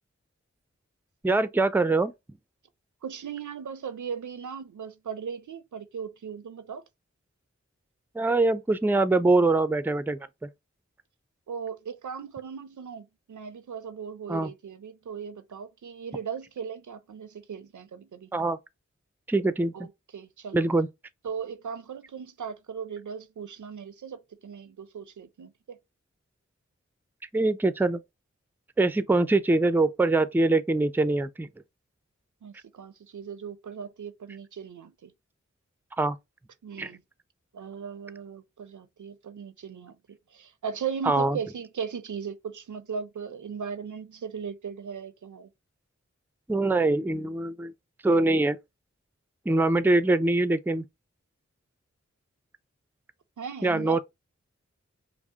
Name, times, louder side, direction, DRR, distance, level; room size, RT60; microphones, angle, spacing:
voice 1, 1.2-2.1 8.1-10.5 14.3-14.5 18.3-18.6 19.3-19.9 20.5-20.9 27.3-28.0 28.8-31.5 36.0-36.2 36.8-36.9 41.1-41.4 46.5-47.7 48.0-48.6 49.5-50.8 53.6-54.0, right 2 dB, 5° right, 0.4 m, -23 dB
voice 2, 3.0-6.8 11.5-18.3 19.7-20.6 21.2-25.8 32.4-35.1 36.6-37.0 37.5-45.5 53.4-54.0, right 6 dB, 85° right, 0.5 m, -38 dB
4.8 x 2.0 x 2.7 m
wide cardioid pair, 40°, 29 cm